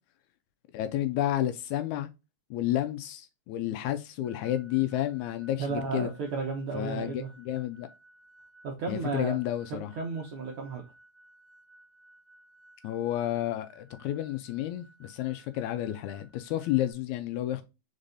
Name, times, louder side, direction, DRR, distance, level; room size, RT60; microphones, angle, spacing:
voice 1, 0.7-2.1 2.5-6.1 6.7-7.9 8.9-9.9 12.8-17.6, left 13 dB, 80° left, 1.8 m, -31 dB
sound 1, 4.2-16.9, right 1 dB, 40° right, 1.9 m, -58 dB
voice 2, 5.6-7.3 8.6-9.4 9.7-10.8, right 4 dB, 75° right, 1.3 m, -33 dB
5.1 x 4.0 x 2.6 m
omnidirectional pair, 3.6 m